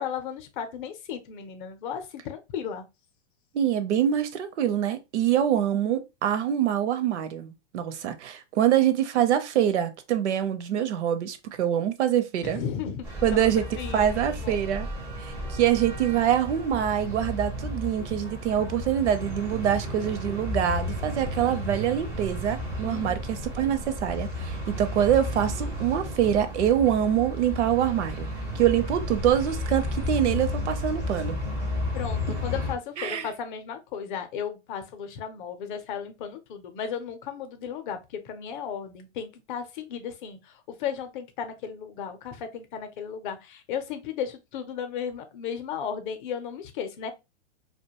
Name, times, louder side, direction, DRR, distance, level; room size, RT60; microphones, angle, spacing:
voice 1, 0.0-2.8 12.4-14.2 14.4-14.6 22.8-23.2 31.9-47.1, left 7 dB, 45° left, 0.6 m, -35 dB
voice 2, 3.5-12.6 13.2-13.6 13.9-14.9 15.2-28.3 28.5-31.4 33.0-33.3, right 10 dB, 70° right, 0.6 m, -25 dB
sound 1, 13.0-32.7, left 1 dB, 10° right, 0.4 m, -33 dB
2.5 x 2.2 x 2.8 m
hypercardioid pair, 140°, 36 cm